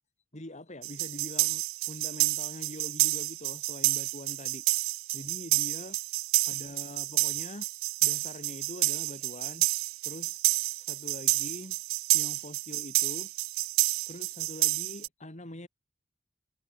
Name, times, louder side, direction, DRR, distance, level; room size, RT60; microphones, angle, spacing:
voice 1, 0.3-4.6 5.1-6.0 6.5-7.7 8.0-9.7 10.0-10.4 10.8-11.8 12.1-13.3 14.1-15.7, left 1 dB, 35° left, 3.3 m, -43 dB
sound 1, 0.8-15.1, right 21 dB, 80° right, 0.3 m, -29 dB
head